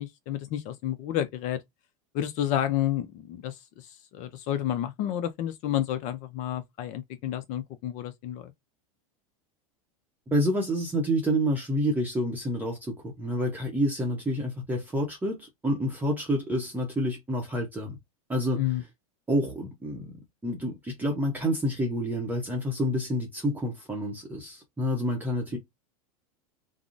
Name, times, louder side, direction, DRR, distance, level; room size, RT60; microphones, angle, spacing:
voice 1, 0.0-1.6 2.1-8.5 18.6-18.8, left 11 dB, 45° left, 0.5 m, -30 dB
voice 2, 10.3-18.0 18.3-18.6 19.3-20.1 20.4-25.6, equal, 10° right, 0.7 m, -28 dB
3.6 x 2.0 x 2.5 m
hypercardioid pair, 110°, 19 cm